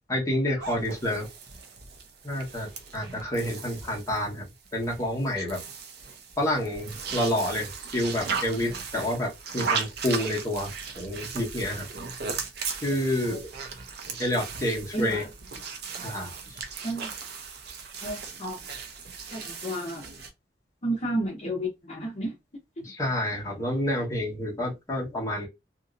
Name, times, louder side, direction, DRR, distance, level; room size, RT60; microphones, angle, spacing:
voice 1, 0.1-1.3 2.2-4.4 4.7-5.6 6.4-11.9 12.8-13.5 14.2-15.2 16.0-16.3 22.8-25.5, left 1 dB, 20° left, 1.1 m, -29 dB
sound 1, 0.6-20.3, right 5 dB, 65° right, 0.7 m, -37 dB
voice 2, 14.9-15.3 16.8-17.1 18.0-18.6 19.3-20.1 20.8-22.3, right 1 dB, 40° left, 0.8 m, -31 dB
2.9 x 2.8 x 2.5 m
head